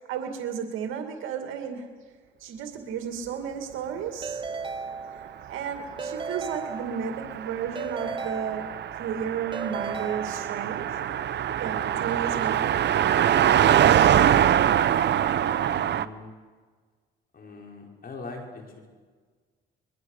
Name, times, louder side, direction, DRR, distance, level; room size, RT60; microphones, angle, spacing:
voice 1, 0.0-1.9 2.4-4.4 5.1-11.0 11.6-13.1, right 7 dB, 90° right, 4 dB, 2.4 m, -33 dB
Keyboard (musical) / Ringtone, 4.2-5.6 6.0-7.3 7.8-9.1 9.5-10.9, right 4 dB, 25° right, 1.0 m, -36 dB
Car passing by, 5.9-16.1, right 10 dB, 60° right, 0.9 m, -24 dB
voice 2, 15.6-16.3 17.3-18.9, left 3 dB, 50° left, 1 dB, 5.6 m, -42 dB
24.0 x 22.5 x 6.6 m, 1.5 s
cardioid pair, 90°, 20 cm